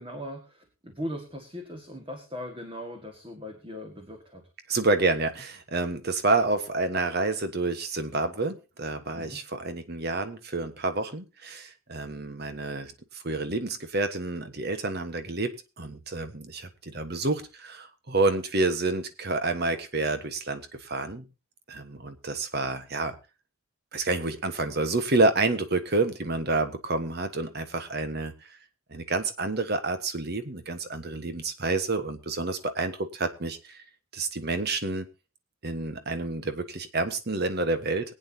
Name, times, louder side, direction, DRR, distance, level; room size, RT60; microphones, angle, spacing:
voice 1, 0.0-4.4 9.1-9.4, equal, 25° right, 4 dB, 1.8 m, -39 dB
voice 2, 4.7-21.3 21.7-23.1 23.9-28.3 28.9-33.8 34.1-35.1 35.6-38.1, right 3 dB, 50° right, 9 dB, 1.4 m, -29 dB
22.5 x 8.9 x 2.8 m, 0.29 s
head